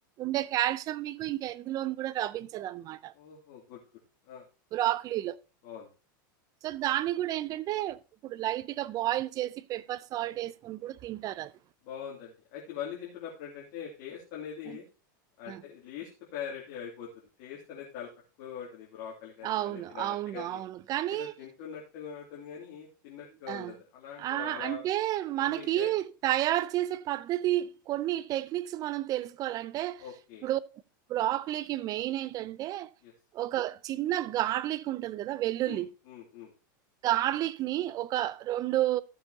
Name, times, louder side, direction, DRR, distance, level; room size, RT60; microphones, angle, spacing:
voice 1, 0.2-3.1 4.7-5.4 6.6-11.5 15.5-15.6 19.4-21.3 23.5-23.7 24.2-30.0 30.4-30.6 31.1-32.9 33.3-35.9 37.0-39.0, right 14 dB, 35° right, 0.5 m, -31 dB
voice 2, 3.1-3.8 4.3-4.5 5.6-5.9 11.8-14.8 15.4-17.1 17.4-18.1 18.4-20.6 21.1-24.8 25.4-25.9 30.0-30.5 33.0-33.1 35.6-36.5, left 8 dB, 55° left, 2.6 m, -42 dB
14.5 x 6.8 x 2.8 m
supercardioid pair, 135°, 11 cm